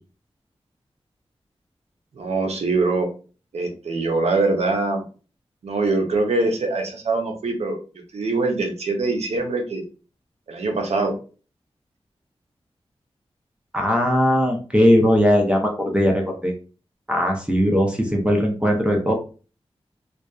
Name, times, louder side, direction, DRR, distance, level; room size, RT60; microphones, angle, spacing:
voice 1, 2.2-3.1 3.5-5.0 5.6-7.8 8.1-9.8 10.5-11.2, right 3 dB, 85° right, 3 dB, 0.6 m, -23 dB
voice 2, 13.7-16.5 17.1-19.1, equal, 10° right, 1 dB, 0.6 m, -19 dB
2.5 x 2.2 x 2.3 m, 0.36 s
wide cardioid pair, 55°, 11 cm